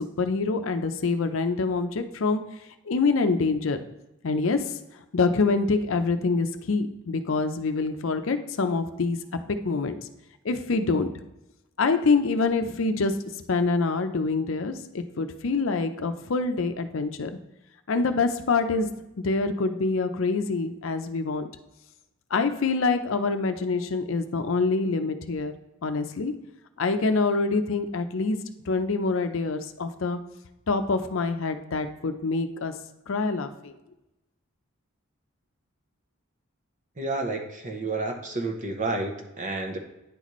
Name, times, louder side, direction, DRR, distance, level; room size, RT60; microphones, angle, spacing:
voice 1, 0.0-2.4 2.9-3.8 4.2-4.6 5.1-9.2 9.6-9.9 10.4-11.1 11.8-13.1 13.5-17.3 17.9-18.9 19.2-21.4 22.3-25.5 25.8-26.3 26.8-28.4 28.7-30.2 30.7-32.7 33.1-33.7, left 4 dB, 65° left, 8 dB, 0.5 m, -25 dB
voice 2, 37.0-39.8, right 2 dB, 35° right, 4 dB, 0.9 m, -30 dB
9.8 x 4.1 x 3.1 m, 0.93 s
head